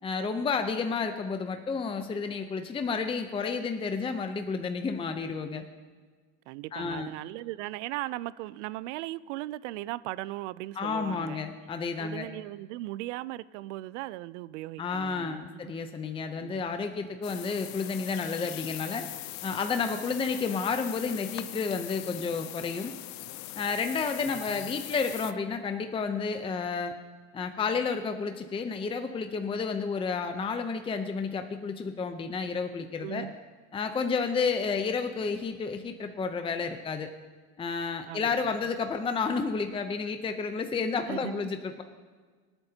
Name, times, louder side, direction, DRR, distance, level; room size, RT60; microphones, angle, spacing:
voice 1, 0.0-5.7 6.7-7.1 10.8-12.3 14.8-19.1 19.4-22.9 23.5-26.9 27.3-33.3 33.7-37.1 37.6-41.8, left 5 dB, 15° left, 0.6 m, -31 dB
voice 2, 6.5-11.4 12.0-15.4 16.4-16.6 24.2-24.8 33.0-33.3 38.1-38.5 41.1-41.5, right 17 dB, 90° right, 0.5 m, -38 dB
sound 1, 17.2-25.3, left 16 dB, 55° left, 0.6 m, -41 dB
25.5 x 8.9 x 2.8 m
supercardioid pair, 130°, 35 cm